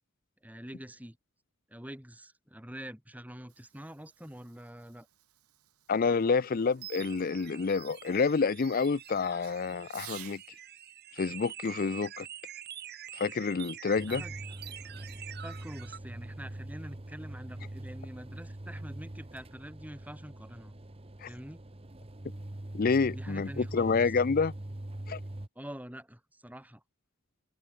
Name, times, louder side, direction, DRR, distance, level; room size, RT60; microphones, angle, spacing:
voice 1, 0.4-1.2 1.7-5.1 14.1-14.3 14.9-15.0 15.4-20.8 21.3-21.6 23.1-24.1 25.6-26.8, equal, 5° right, 3.4 m, -46 dB
Fireworks, 3.3-10.5 11.6-13.3, right 14 dB, 90° right, 3.2 m, -55 dB
voice 2, 5.9-10.4 11.1-12.3 13.1-14.2 21.2-21.3 22.7-24.5 25.1-25.2, left 4 dB, 40° left, 0.4 m, -28 dB
sound 1, 5.9-16.0, right 10 dB, 45° right, 2.6 m, -46 dB
sound 2, 14.0-25.5, right 1 dB, 25° right, 1.1 m, -43 dB
open air
head